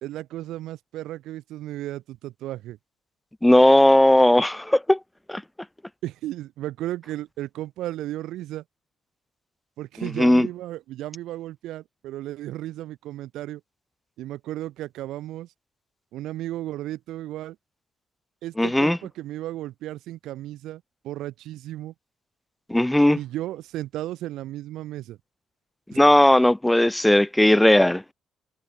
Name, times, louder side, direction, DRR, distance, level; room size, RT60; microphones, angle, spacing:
voice 1, 0.0-2.8 6.0-8.6 9.8-13.6 14.2-15.5 16.1-17.6 18.4-21.9 23.1-25.2 25.9-26.0, right 14 dB, 85° right, 2.7 m, -34 dB
voice 2, 3.4-5.0 5.3-5.4 10.0-10.5 18.6-19.0 22.7-23.2 26.0-28.0, left 1 dB, 5° left, 0.7 m, -17 dB
cardioid pair, 90°, 0 cm